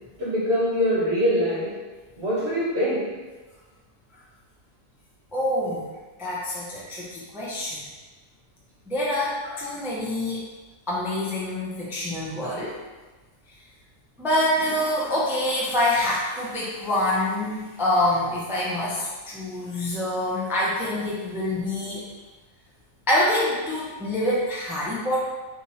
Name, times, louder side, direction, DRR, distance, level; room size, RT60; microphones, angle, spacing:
voice 1, 0.2-1.8 2.2-3.1, equal, 50° right, -7 dB, 1.5 m, -23 dB
voice 2, 5.3-5.9 6.2-7.8 8.9-10.4 10.9-12.8 14.2-22.0 23.1-25.3, left 1 dB, 5° right, -6 dB, 0.4 m, -26 dB
3.5 x 2.8 x 4.2 m, 1.3 s
omnidirectional pair, 1.5 m